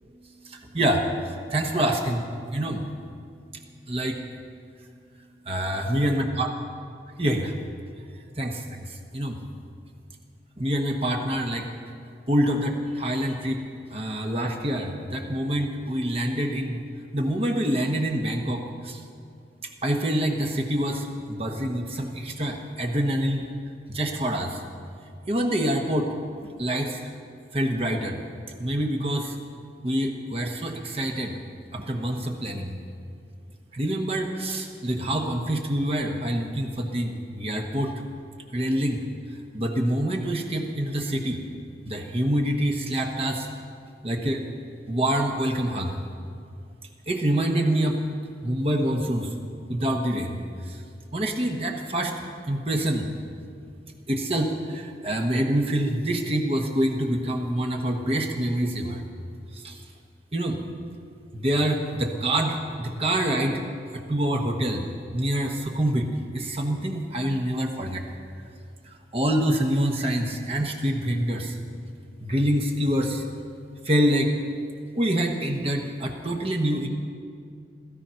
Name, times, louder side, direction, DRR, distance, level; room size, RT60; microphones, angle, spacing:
voice 1, 0.2-2.9 3.9-4.2 5.4-6.5 7.2-7.5 8.4-9.4 10.6-11.7 12.3-13.6 13.9-16.8 17.1-19.0 19.8-23.5 23.9-24.6 25.3-26.1 26.4-27.1 27.5-28.2 28.6-29.4 29.8-31.4 31.7-32.8 33.7-37.9 38.5-39.0 39.5-41.5 41.8-43.5 44.0-44.5 44.9-46.0 47.1-48.0 48.4-49.3 49.7-50.8 51.1-52.1 52.5-53.1 54.1-59.0 59.5-59.8 60.3-60.6 61.3-63.6 63.9-68.0 68.8-71.6 72.2-73.2 73.8-74.3 74.9-76.9, right 1 dB, 35° right, 2 dB, 1.1 m, -26 dB
16.0 x 14.0 x 5.7 m, 2.3 s
head